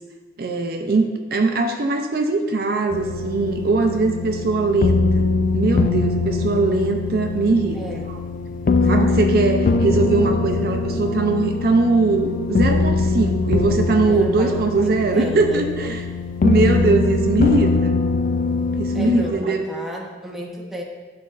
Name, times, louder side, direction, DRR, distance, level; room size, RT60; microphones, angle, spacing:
voice 1, 0.4-5.3 5.5-7.8 8.9-16.0 16.4-17.9 18.8-19.6, right 3 dB, 55° right, 4 dB, 0.5 m, -21 dB
sound 1, 2.9-19.3, left 3 dB, 50° left, 0.3 m, -22 dB
voice 2, 7.7-8.1 8.6-9.1 14.0-15.7 18.9-20.8, equal, ahead, -2 dB, 0.7 m, -33 dB
10.5 x 4.1 x 2.4 m, 1.3 s
head